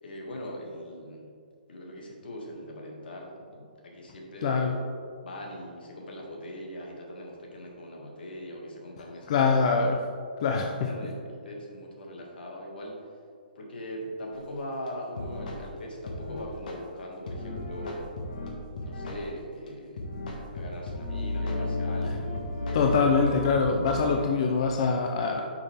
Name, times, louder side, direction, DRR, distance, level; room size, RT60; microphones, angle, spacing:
voice 1, 0.0-1.3 1.7-4.7 5.2-9.6 10.8-13.0 13.6-18.2 18.8-20.0 20.5-23.0 24.7-25.5, equal, 70° left, -1 dB, 1.9 m, -41 dB
voice 2, 4.4-4.8 9.3-10.0 10.4-10.9 22.7-25.5, left 4 dB, 35° left, 2 dB, 0.4 m, -24 dB
sound 1, 14.3-14.4 14.9-15.0 15.2-15.6 16.1-16.7 17.3-19.2 19.7-19.8 20.0-24.3, left 2 dB, 55° left, 1.3 m, -34 dB
8.1 x 5.8 x 3.4 m, 2.2 s
hypercardioid pair, 170°, 5 cm